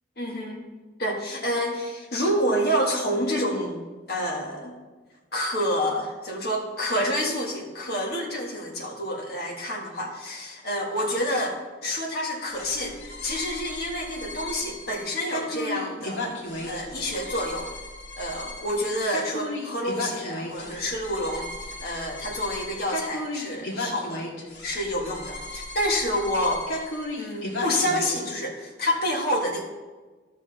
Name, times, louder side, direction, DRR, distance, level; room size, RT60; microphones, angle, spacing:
voice 1, 0.2-0.7 1.0-3.8 4.1-4.7 5.3-16.4 16.6-17.7 18.2-24.3 24.6-26.6 27.2-29.6, equal, 50° left, -1 dB, 1.6 m, -28 dB
sound 1, 12.5-28.2, left 1 dB, 80° left, 1.7 m, -35 dB
13.0 x 6.1 x 3.4 m, 1.3 s
head